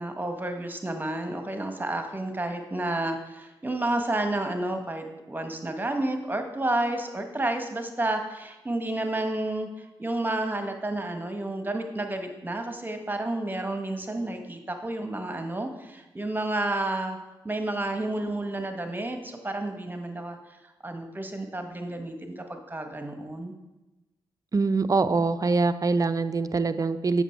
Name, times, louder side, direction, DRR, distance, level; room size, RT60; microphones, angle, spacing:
voice 1, 0.0-17.2 17.4-23.5, right 2 dB, 20° right, 5 dB, 1.3 m, -31 dB
voice 2, 24.5-27.2, right 3 dB, 35° right, 11 dB, 0.6 m, -24 dB
7.9 x 6.0 x 4.5 m, 1.0 s
supercardioid pair, 45°, 10 cm